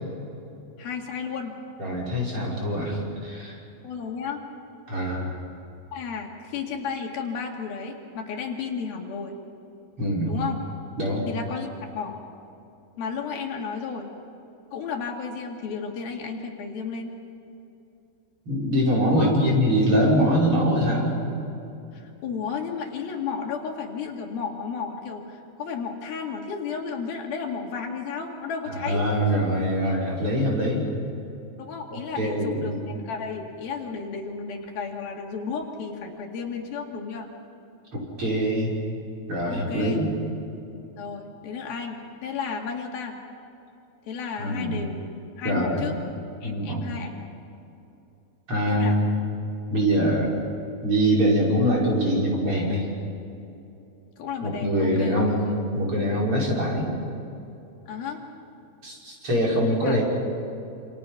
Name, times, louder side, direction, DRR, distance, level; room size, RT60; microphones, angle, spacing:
voice 1, 0.8-1.5 3.8-4.4 5.9-9.4 10.3-10.6 11.3-11.7 11.9-12.2 13.0-14.1 14.7-17.2 19.1-19.3 21.9-29.0 29.3-29.5 31.6-37.3 39.5-40.0 41.0-43.2 44.1-45.0 45.4-46.0 46.4-47.1 48.7-49.0 54.2-55.2 57.9-58.2 59.8-60.0, left 5 dB, 75° left, 1 dB, 4.0 m, -33 dB
voice 2, 1.8-3.6 4.9-5.4 10.0-10.4 11.0-11.3 18.5-21.2 28.7-30.9 31.9-32.7 37.9-38.7 39.3-40.1 44.4-44.8 45.4-45.9 46.4-46.8 48.5-49.1 49.7-50.3 50.8-52.8 54.4-55.5 55.7-56.9 58.8-60.0, equal, 35° right, -4 dB, 6.4 m, -23 dB
28.0 x 28.0 x 5.8 m, 2.8 s
omnidirectional pair, 4.4 m